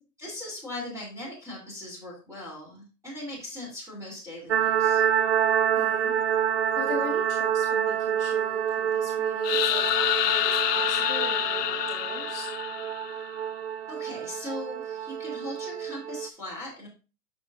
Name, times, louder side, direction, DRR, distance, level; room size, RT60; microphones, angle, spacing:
voice 1, 0.2-5.0 13.9-16.9, left 1 dB, 5° right, -3 dB, 2.9 m, -39 dB
sound 1, 4.5-16.3, right 9 dB, 45° right, 0.4 m, -27 dB
voice 2, 5.7-6.2 6.7-12.5, left 5 dB, 45° left, 4 dB, 1.7 m, -40 dB
sound 2, 9.4-13.3, left 12 dB, 75° left, 0.6 m, -27 dB
7.7 x 6.0 x 2.5 m, 0.32 s
hypercardioid pair, 145°, 47 cm